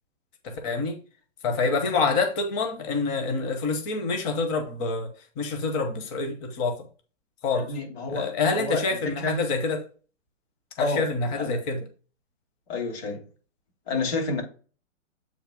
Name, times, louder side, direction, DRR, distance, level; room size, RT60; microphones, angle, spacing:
voice 1, 0.4-1.0 1.4-5.1 5.4-6.8 7.4-7.7 8.1-9.9 10.8-11.8, left 4 dB, 25° left, 0.9 m, -27 dB
voice 2, 7.6-9.4 10.8-11.1 11.4-11.6 12.7-13.2 13.9-14.4, left 3 dB, 55° left, 2.8 m, -30 dB
7.9 x 2.9 x 5.1 m
hypercardioid pair, 155°, 38 cm